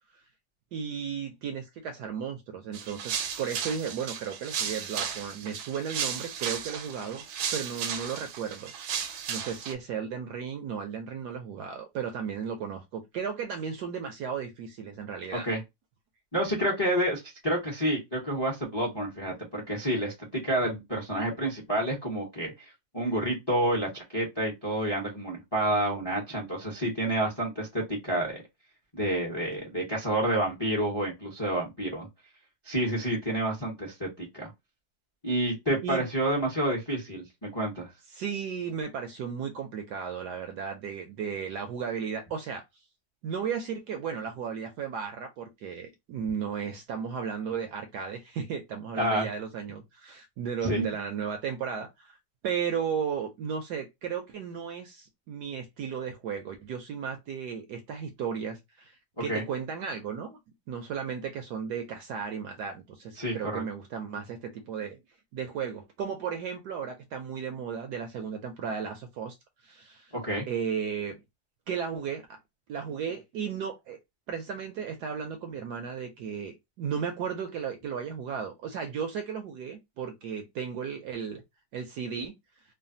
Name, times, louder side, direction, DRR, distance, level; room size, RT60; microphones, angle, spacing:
voice 1, 0.7-7.2 7.5-9.0 9.3-15.5 35.8-36.0 38.1-42.6 43.2-52.1 52.4-60.4 60.7-65.0 65.3-69.3 69.6-70.1 70.5-71.2 71.7-72.4 72.7-74.0 74.3-81.4 81.7-82.3, right 7 dB, 70° right, 1.0 m, -35 dB
sound 1, 2.7-9.7, right 8 dB, 90° right, 1.4 m, -35 dB
voice 2, 16.3-22.7 22.9-28.4 28.9-32.1 32.6-34.5 35.2-37.9 48.9-49.3 50.6-50.9 59.3-59.4 63.2-63.6 70.1-70.5, right 1 dB, 30° left, 0.4 m, -29 dB
3.2 x 2.2 x 2.5 m
omnidirectional pair, 2.1 m